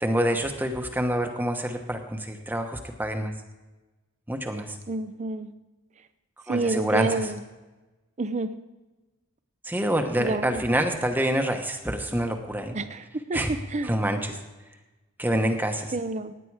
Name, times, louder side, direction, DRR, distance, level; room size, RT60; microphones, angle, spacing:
voice 1, 0.0-3.3 4.3-4.8 6.5-7.3 9.6-12.8 13.3-14.4 15.2-16.0, right 1 dB, 10° right, 4 dB, 1.0 m, -27 dB
voice 2, 4.9-5.5 6.5-7.3 8.2-8.5 10.2-10.6 12.7-13.0 13.3-13.4 13.7-13.9 15.9-16.3, right 3 dB, 35° right, 11 dB, 0.5 m, -28 dB
17.0 x 9.9 x 4.8 m, 1.1 s
head